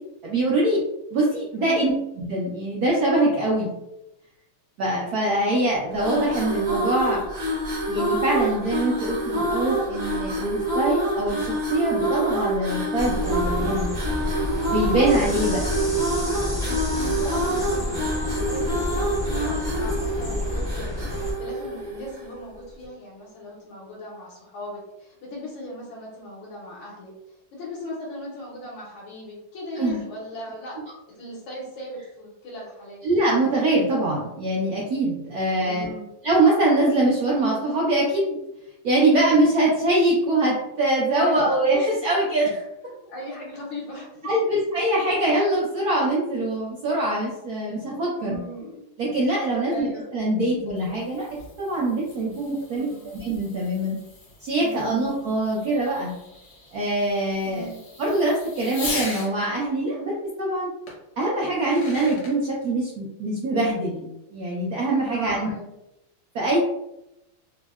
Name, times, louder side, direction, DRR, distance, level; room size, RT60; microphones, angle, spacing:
voice 1, 0.2-0.8 1.1-1.9 2.2-3.7 4.8-7.2 7.9-13.9 14.6-15.6 29.8-30.0 33.0-35.9 36.2-38.4 38.8-42.6 44.2-48.4 49.0-51.3 51.6-52.9 53.2-54.0 54.4-56.1 56.7-57.7 58.0-60.7 61.2-65.5 66.3-66.6, right 1 dB, 80° right, -4 dB, 0.8 m, -23 dB
voice 2, 1.5-1.9 15.2-15.8 16.6-27.1 27.5-30.8 31.1-33.0 35.6-36.1 41.1-41.5 42.9-44.4 48.1-48.7 49.7-50.1 52.7-53.1 54.5-54.9 57.4-57.8 65.0-65.7, left 1 dB, 80° left, -5 dB, 1.5 m, -38 dB
sound 1, 5.9-22.4, right 1 dB, 50° right, 0.7 m, -27 dB
sound 2, 13.0-21.3, left 1 dB, 40° left, 0.3 m, -29 dB
Fireworks, 50.5-59.3 60.9-61.0 61.5-62.3, left 2 dB, 60° left, 0.9 m, -39 dB
3.7 x 2.1 x 2.2 m, 0.89 s
omnidirectional pair, 2.3 m